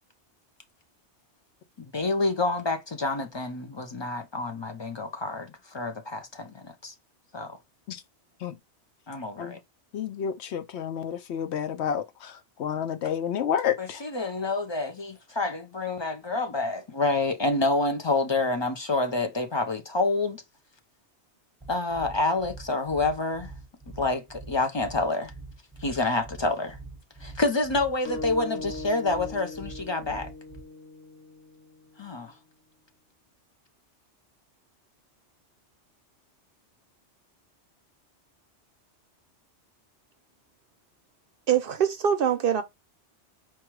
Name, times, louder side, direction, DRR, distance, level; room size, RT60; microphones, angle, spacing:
voice 1, 1.9-6.9 7.3-7.6 9.1-9.6 13.8-20.4 21.7-23.5 24.0-25.3 25.8-26.8 27.2-30.3 32.0-32.3, left 2 dB, 30° left, 0.6 m, -28 dB
voice 2, 9.9-14.0, left 8 dB, 75° left, 0.9 m, -30 dB
sound 1, 21.6-30.6, right 3 dB, 5° right, 0.8 m, -44 dB
sound 2, 28.0-32.3, left 2 dB, 50° left, 2.9 m, -40 dB
voice 3, 41.5-42.6, right 8 dB, 60° right, 0.7 m, -23 dB
4.6 x 2.4 x 4.6 m
omnidirectional pair, 1.2 m